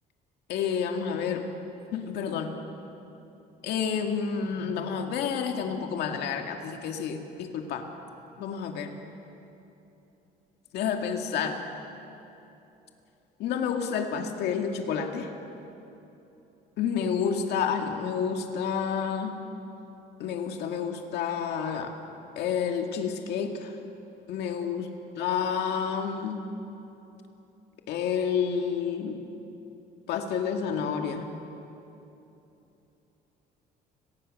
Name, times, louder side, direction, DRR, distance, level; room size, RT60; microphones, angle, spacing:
voice 1, 0.5-1.5 1.9-2.5 3.6-7.9 8.4-8.9 10.7-11.6 13.4-15.3 16.8-19.4 20.2-22.0 22.4-23.8 24.3-24.9 25.2-26.5 27.9-29.2 30.1-31.3, left 7 dB, 80° left, 3 dB, 2.1 m, -29 dB
30.0 x 19.5 x 6.5 m, 2.9 s
cardioid pair, 110°, 17 cm